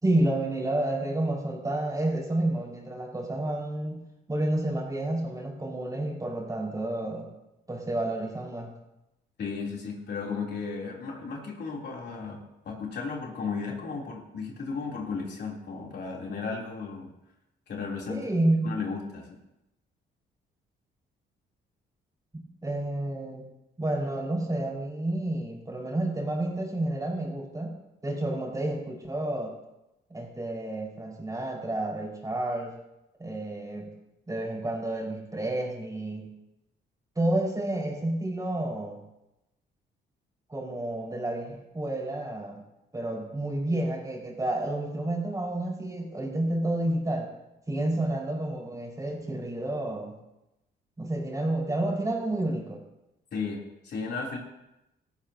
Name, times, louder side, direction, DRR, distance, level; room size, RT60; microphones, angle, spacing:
voice 1, 0.0-4.0 4.3-7.3 7.7-8.7 18.1-18.7 22.3-23.5 23.8-27.7 28.0-29.5 30.1-32.7 33.2-33.9 34.3-36.3 37.2-39.0 40.5-42.6 42.9-47.3 47.7-50.2 51.0-52.8, right 1 dB, 15° right, -2 dB, 5.4 m, -30 dB
voice 2, 9.4-17.1 17.7-18.2 18.6-19.4 53.3-54.4, left 4 dB, 55° left, -2 dB, 3.5 m, -34 dB
17.5 x 15.0 x 2.9 m, 0.91 s
cardioid pair, 90°, 20 cm